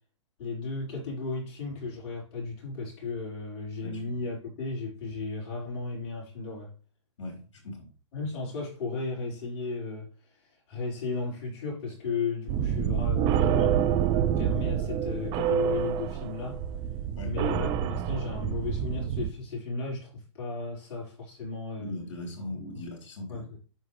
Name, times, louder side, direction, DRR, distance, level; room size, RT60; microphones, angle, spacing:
voice 1, 0.4-6.7 8.1-10.1 10.7-16.6 17.2-21.9 22.7-22.9 23.3-23.6, left 4 dB, 40° left, 5.0 m, -35 dB
voice 2, 3.8-4.1 7.2-7.9 17.2-17.3 21.8-23.5, left 2 dB, 70° left, 4.0 m, -39 dB
sound 1, 12.5-19.3, right 9 dB, 30° right, 0.6 m, -27 dB
9.0 x 6.3 x 3.3 m
hypercardioid pair, 125°, 16 cm